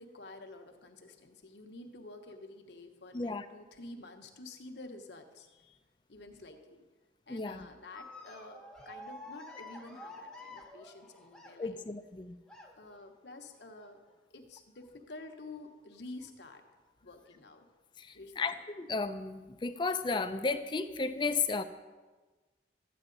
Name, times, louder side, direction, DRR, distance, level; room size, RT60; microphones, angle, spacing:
voice 1, 0.0-5.8 6.1-6.8 7.3-11.8 12.8-14.0 14.3-16.6 17.0-17.7 18.1-18.6, left 2 dB, 70° left, 5 dB, 1.0 m, -49 dB
voice 2, 3.1-3.5 7.3-7.7 11.6-12.4 18.0-21.6, left 4 dB, 25° left, 10 dB, 0.4 m, -34 dB
sound 1, 7.9-11.9 12.5-13.0 14.0-14.4 14.8-14.9 16.2-16.3 17.1-17.3, left 2 dB, 5° left, 0.9 m, -50 dB
13.0 x 8.8 x 3.9 m, 1.3 s
head